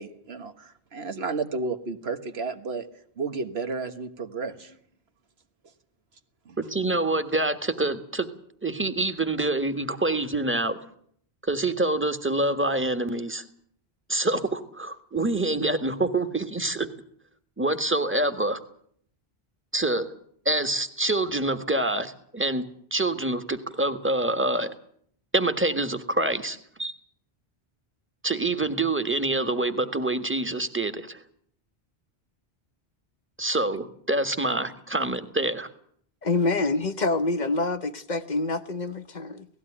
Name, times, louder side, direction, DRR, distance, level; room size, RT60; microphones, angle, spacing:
voice 1, 0.0-2.9 3.2-4.8 6.5-6.6, right 4 dB, 90° right, 1.7 m, -32 dB
voice 2, 6.6-8.3 8.6-10.8 11.4-13.4 14.1-16.9 17.6-18.6 19.7-20.1 20.4-22.6 22.9-24.7 25.3-26.9 28.2-31.2 33.4-35.7, right 2 dB, 10° right, 1.4 m, -26 dB
voice 3, 36.2-39.5, left 3 dB, 45° left, 1.0 m, -26 dB
18.0 x 15.0 x 10.0 m
omnidirectional pair, 1.0 m